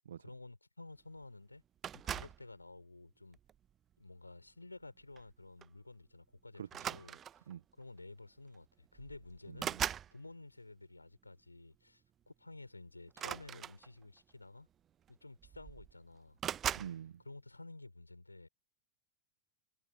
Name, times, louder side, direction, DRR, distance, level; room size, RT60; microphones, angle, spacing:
voice 1, 0.2-1.6 1.9-3.4 4.0-7.2 7.8-9.7 10.1-14.7 15.1-16.4 17.2-18.5, left 2 dB, 85° left, 6.1 m, -52 dB
sound 1, 1.8-2.5 3.3-3.7 5.2-5.3 5.6-5.8 6.7-7.5 8.5-8.6 8.9-10.1 13.1-14.2 15.1-15.2 15.4-15.9 16.4-17.0, right 9 dB, 25° right, 0.3 m, -40 dB
voice 2, 6.6-7.0 7.5-7.6 9.5-9.8 16.7-17.2, right 9 dB, 65° right, 1.3 m, -46 dB
figure-of-eight pair, 90°, 0 cm